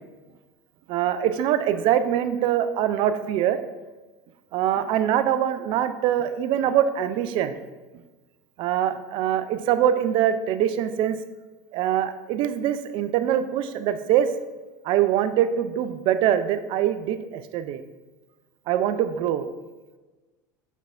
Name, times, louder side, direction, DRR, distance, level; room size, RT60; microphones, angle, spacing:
voice 1, 0.9-3.6 4.5-7.6 8.6-11.2 11.7-14.3 14.8-17.8 18.7-19.5, right 10 dB, 50° right, 11 dB, 0.3 m, -23 dB
5.4 x 3.5 x 2.4 m, 1.2 s
hypercardioid pair, 80°, 11 cm